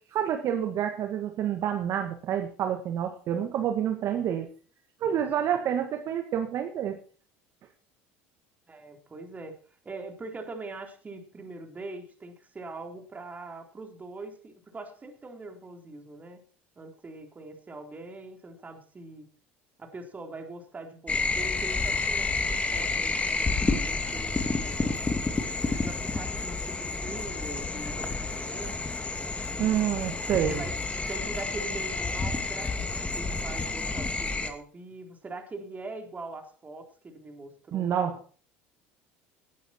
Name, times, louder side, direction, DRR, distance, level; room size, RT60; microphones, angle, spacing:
voice 1, 0.1-4.5 5.0-7.0 29.6-30.6 37.7-38.2, right 9 dB, 55° right, 5 dB, 1.8 m, -28 dB
voice 2, 8.7-9.5 9.8-16.4 16.8-19.3 19.8-23.5 23.7-24.9 25.6-28.8 30.4-38.2, right 2 dB, 25° right, 3 dB, 3.7 m, -42 dB
sound 1, 21.1-34.5, left 3 dB, 20° left, 2.1 m, -30 dB
18.5 x 9.4 x 4.5 m, 0.42 s
hypercardioid pair, 80°, 6 cm